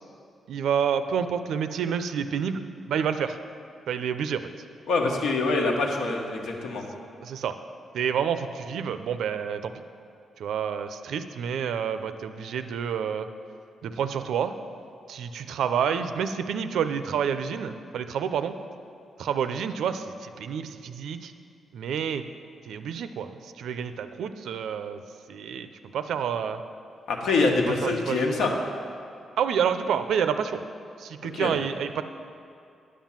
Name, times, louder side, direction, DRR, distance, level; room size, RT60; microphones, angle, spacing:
voice 1, 0.5-3.4 3.9-4.4 7.2-7.5 7.9-9.7 10.4-13.3 13.8-14.6 15.1-18.5 19.2-21.3 21.7-22.2 22.7-25.0 25.3-26.6 27.8-28.6 29.4-30.6 31.0-32.0, right 7 dB, 80° right, 10 dB, 0.5 m, -29 dB
voice 2, 4.9-6.8 27.1-28.5 31.3-31.5, left 3 dB, 80° left, 1 dB, 1.5 m, -25 dB
9.9 x 7.4 x 7.4 m, 2.5 s
wide cardioid pair, 165°, 0 cm